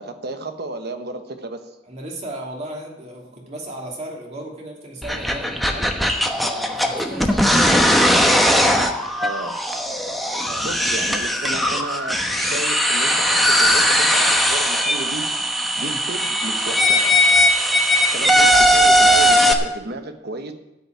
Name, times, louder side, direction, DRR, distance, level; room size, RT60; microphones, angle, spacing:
voice 1, 0.0-1.7 9.2-9.6 10.6-15.3 15.8-17.2 18.1-20.5, right 2 dB, 60° right, 7 dB, 1.2 m, -32 dB
voice 2, 1.8-5.9 6.3-7.4 10.5-10.9 15.8-16.0, right 1 dB, 35° right, -1 dB, 2.8 m, -35 dB
sound 1, 5.0-19.5, equal, ahead, 1.0 m, -18 dB
13.0 x 5.6 x 9.2 m, 0.94 s
head